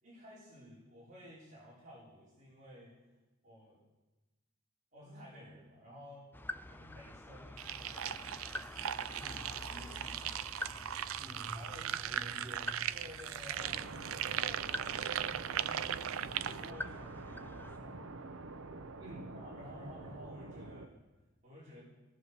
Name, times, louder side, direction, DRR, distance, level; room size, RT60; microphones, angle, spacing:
voice 1, 0.0-2.9 3.4-3.8 4.9-6.3 6.7-8.3 9.5-10.6 11.5-12.0 12.9-15.8 16.2-18.2 19.3-21.0 21.4-21.8, equal, 40° right, -8 dB, 5.1 m, -53 dB
sound 1, 6.3-17.8, left 1 dB, 10° left, 0.4 m, -47 dB
sound 2, 7.6-16.7, right 10 dB, 90° right, 0.4 m, -38 dB
voice 2, 9.2-9.5 11.1-12.8 19.0-19.3, equal, 20° right, -6 dB, 5.6 m, -49 dB
sound 3, 13.6-20.9, right 3 dB, 70° right, 0.9 m, -47 dB
19.0 x 11.0 x 6.9 m, 1.1 s
head